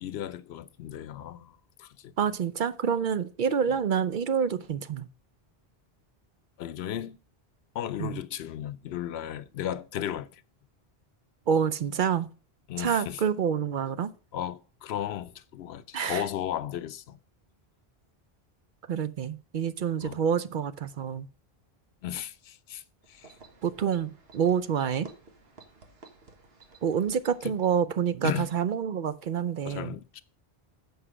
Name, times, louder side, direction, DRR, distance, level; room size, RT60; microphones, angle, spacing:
voice 1, 0.0-2.1 6.6-7.2 7.7-10.4 12.7-13.2 14.3-17.2 20.0-20.2 22.0-22.8 23.1-23.3 27.4-27.5 28.2-28.5 29.6-30.2, left 11 dB, 90° left, 0.9 m, -35 dB
voice 2, 2.2-5.1 8.0-8.2 11.5-12.3 12.8-14.1 15.9-16.3 18.9-21.3 23.6-25.1 26.8-29.9, right 7 dB, 60° right, 0.6 m, -27 dB
sound 1, 23.0-27.9, right 3 dB, 80° right, 1.6 m, -54 dB
7.9 x 5.6 x 4.9 m
omnidirectional pair, 1.0 m